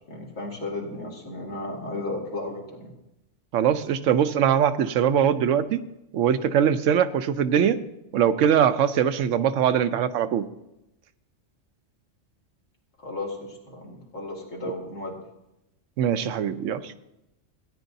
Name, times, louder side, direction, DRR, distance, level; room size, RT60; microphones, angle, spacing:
voice 1, 0.1-2.9 13.0-15.2, left 2 dB, 80° left, -2 dB, 2.6 m, -34 dB
voice 2, 3.5-5.8 6.1-7.8 8.1-10.4 16.0-16.9, right 8 dB, 80° right, 12 dB, 1.0 m, -22 dB
16.5 x 9.9 x 2.7 m, 0.89 s
omnidirectional pair, 1.3 m